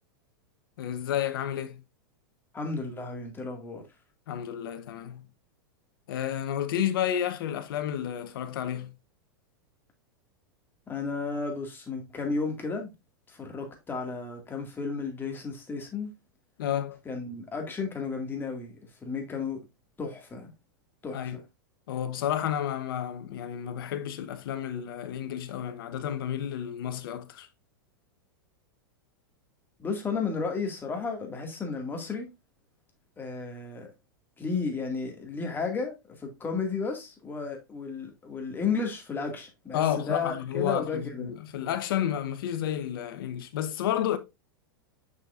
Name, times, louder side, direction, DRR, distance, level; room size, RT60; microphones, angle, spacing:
voice 1, 0.8-1.8 4.3-5.3 6.1-8.9 16.6-17.0 21.1-21.4 21.9-27.5 39.7-44.2, left 10 dB, 70° left, 1.0 m, -31 dB
voice 2, 2.5-3.8 10.9-12.9 13.3-16.1 17.1-18.7 19.0-19.6 20.0-20.5 21.0-21.4 29.8-32.3 33.2-33.9 34.4-41.4, left 4 dB, 15° left, 2.0 m, -33 dB
6.6 x 6.0 x 2.5 m
hypercardioid pair, 130°, 12 cm